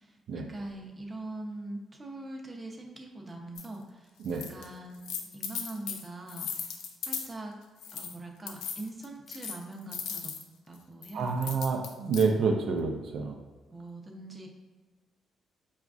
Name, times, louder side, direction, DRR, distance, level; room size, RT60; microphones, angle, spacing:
voice 1, 0.0-7.5 7.9-10.3 10.7-11.6 13.7-14.5, right 2 dB, 20° right, 0 dB, 0.6 m, -43 dB
sound 1, 3.6-3.7 4.2-4.7 4.9-7.3 7.8-8.2 8.5-10.4 11.0-12.2, left 7 dB, 85° left, 0.4 m, -37 dB
voice 2, 11.1-13.3, right 4 dB, 70° right, 3 dB, 0.4 m, -28 dB
4.9 x 2.3 x 2.4 m, 1.4 s
cardioid pair, 90°, 0 cm